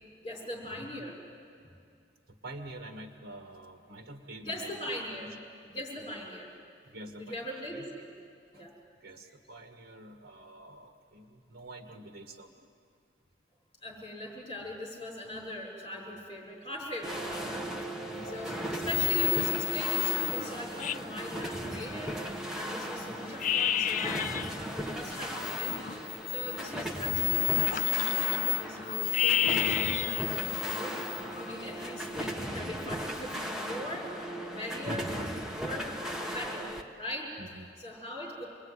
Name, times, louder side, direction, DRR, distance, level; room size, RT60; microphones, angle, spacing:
voice 1, 0.2-1.2 1.6-1.8 4.4-5.3 5.6-6.6 7.2-8.1 8.5-8.7 13.8-34.1 34.4-35.1 35.6-37.3 37.8-38.4, equal, 25° left, -2 dB, 6.2 m, -41 dB
voice 2, 2.4-5.4 6.0-6.2 6.9-7.9 8.5-8.7 9.0-12.5 18.0-18.4 23.0-23.2 34.9-35.2 36.2-36.5 37.4-37.7, right 1 dB, 85° right, 5 dB, 1.7 m, -47 dB
sound 1, 17.0-36.8, equal, 5° right, 1.4 m, -37 dB
sound 2, 18.2-18.6 18.8-22.4 22.8-22.9 23.2-24.6 25.0-32.3, left 13 dB, 45° left, 0.5 m, -31 dB
26.0 x 20.5 x 9.8 m, 2.4 s
head